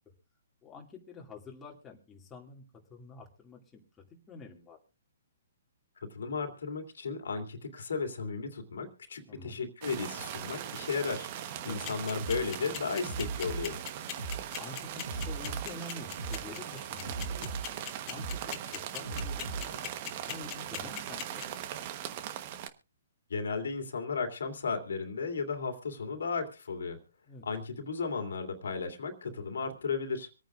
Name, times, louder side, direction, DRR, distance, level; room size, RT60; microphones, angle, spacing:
voice 1, 0.6-2.6 2.9-3.8 4.3-4.8 9.3-9.6 11.6-11.8 14.3-17.5 18.1-21.6 27.3-27.4, left 3 dB, 15° left, -1 dB, 2.3 m, -48 dB
voice 2, 6.0-13.8 23.3-27.0 27.4-30.3, left 5 dB, 80° left, 5 dB, 2.6 m, -35 dB
sound 1, 9.8-22.7, right 10 dB, 40° right, 1.1 m, -40 dB
sound 2, 11.8-21.4, left 13 dB, 30° left, 1.7 m, -38 dB
sound 3, 12.2-19.9, right 4 dB, 80° right, 3.6 m, -39 dB
25.5 x 9.2 x 2.5 m, 0.33 s
hypercardioid pair, 145°, 0 cm